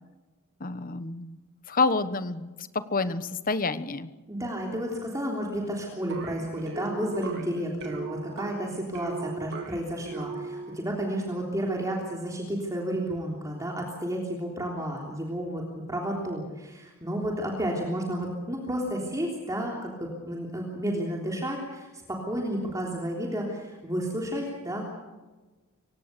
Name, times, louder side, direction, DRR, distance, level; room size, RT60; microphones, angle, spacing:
voice 1, 0.6-1.4 1.7-4.1, left 3 dB, 40° left, 12 dB, 1.1 m, -28 dB
voice 2, 4.3-24.8, equal, 15° right, -1 dB, 3.4 m, -32 dB
sound 1, 6.1-10.9, right 4 dB, 55° right, 3.1 m, -38 dB
26.5 x 17.0 x 6.8 m, 1.2 s
head